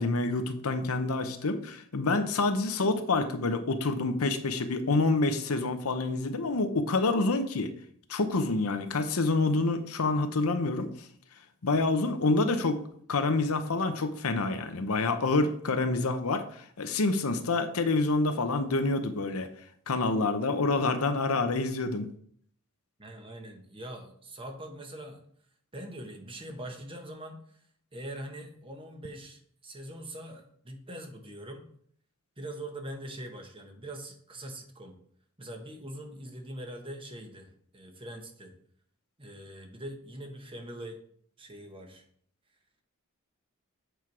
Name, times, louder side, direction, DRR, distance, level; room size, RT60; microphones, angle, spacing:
voice 1, 0.0-7.7 8.1-10.9 11.6-12.8 13.1-19.5 19.9-22.1, left 3 dB, 80° left, 8 dB, 0.8 m, -27 dB
voice 2, 23.0-25.2 25.7-27.4 27.9-31.7 32.4-34.9 35.4-38.5 39.2-41.0 41.4-42.0, right 1 dB, 25° right, 4 dB, 1.1 m, -42 dB
8.0 x 4.6 x 4.7 m, 0.62 s
head